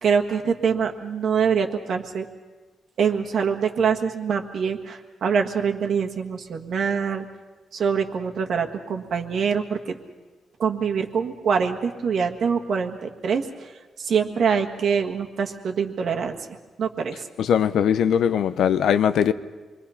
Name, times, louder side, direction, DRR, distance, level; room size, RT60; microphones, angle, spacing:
voice 1, 0.0-2.2 3.0-7.3 7.7-10.0 10.6-13.7 14.0-17.2, right 6 dB, 55° right, 1.6 m, -24 dB
voice 2, 17.4-19.3, left 8 dB, 70° left, 0.7 m, -20 dB
27.0 x 22.5 x 5.7 m
wide cardioid pair, 165°, 0 cm